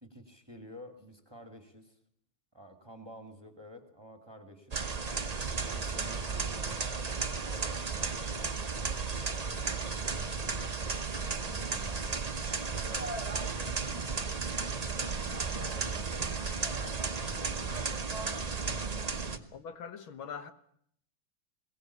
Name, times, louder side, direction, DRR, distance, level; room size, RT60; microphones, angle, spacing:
voice 1, 0.0-2.0 2.5-4.8 5.7-7.9 8.1-10.3 11.3-12.2 12.7-14.0 14.4-17.8 18.1-18.7 19.0-19.5, equal, 10° right, 2.3 m, -51 dB
sound 1, 4.7-19.4, right 4 dB, 30° right, 0.8 m, -34 dB
voice 2, 19.5-20.5, left 6 dB, 85° left, 2.2 m, -42 dB
21.5 x 18.0 x 8.4 m
omnidirectional pair, 2.2 m